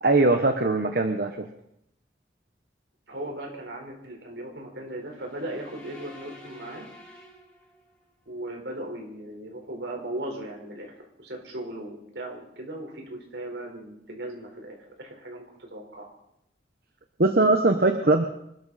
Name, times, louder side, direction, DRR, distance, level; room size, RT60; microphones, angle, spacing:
voice 1, 0.0-1.5 17.2-18.2, right 2 dB, 55° right, 6 dB, 1.1 m, -21 dB
voice 2, 3.1-6.8 8.3-15.4 15.7-16.1, right 1 dB, 70° right, 1 dB, 4.6 m, -37 dB
sound 1, 5.1-8.1, equal, 5° left, 4.5 m, -49 dB
25.0 x 13.0 x 4.3 m, 0.80 s
head